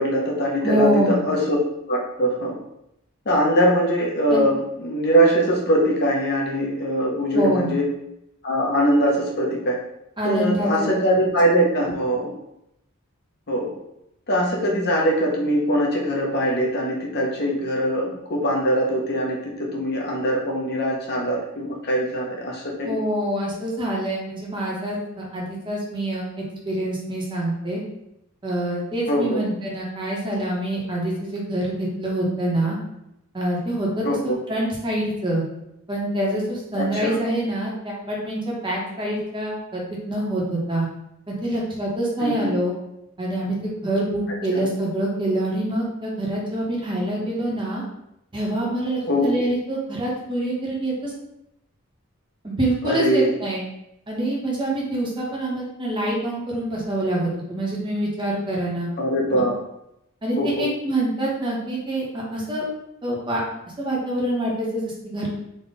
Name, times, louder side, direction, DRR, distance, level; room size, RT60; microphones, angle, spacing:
voice 1, 0.0-1.6 1.9-2.6 3.3-7.9 8.4-9.8 10.2-12.3 13.5-13.7 14.3-23.0 29.1-29.4 34.0-34.4 36.7-37.2 42.2-42.5 44.5-44.6 49.1-49.4 52.8-53.4 59.0-59.5 60.4-60.7, equal, 50° left, -2 dB, 0.8 m, -22 dB
voice 2, 0.6-1.2 4.3-4.4 7.3-7.7 10.2-10.9 22.8-26.3 26.6-27.8 28.4-32.8 33.3-35.4 35.9-39.8 40.1-40.9 41.3-42.7 43.2-47.8 48.3-51.1 52.4-53.6 54.1-58.9 59.3-59.4 60.2-62.6 63.0-63.4 63.8-65.3, right 1 dB, 25° right, -4 dB, 1.0 m, -25 dB
3.7 x 2.4 x 4.0 m, 0.82 s
head